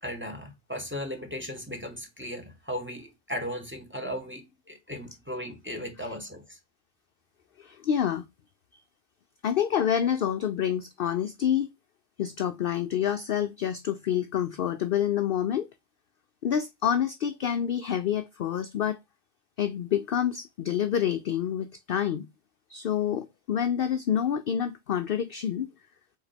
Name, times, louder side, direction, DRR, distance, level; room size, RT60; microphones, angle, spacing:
voice 1, 0.0-6.6, equal, 10° right, 1.3 m, -36 dB
voice 2, 7.6-8.2 9.4-11.7 12.2-15.7 16.4-19.0 19.6-22.3 22.7-25.7, left 9 dB, 60° left, 0.6 m, -27 dB
5.0 x 4.1 x 5.0 m
omnidirectional pair, 1.3 m